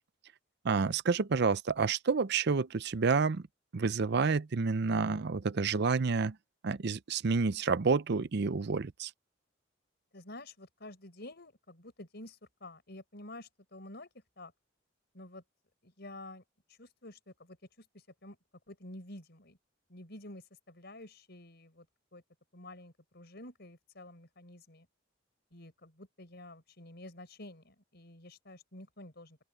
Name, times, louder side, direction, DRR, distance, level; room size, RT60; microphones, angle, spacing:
voice 1, 0.6-3.4 3.7-6.4 6.6-9.1, right 4 dB, 60° right, 0.6 m, -29 dB
voice 2, 10.1-14.1 14.4-14.5 15.1-15.4 15.8-16.4 16.8-17.8 18.2-18.4 18.7-19.6 19.9-21.9 22.1-22.2 22.5-24.9 25.5-29.4, left 1 dB, 55° left, 6.0 m, -50 dB
open air
head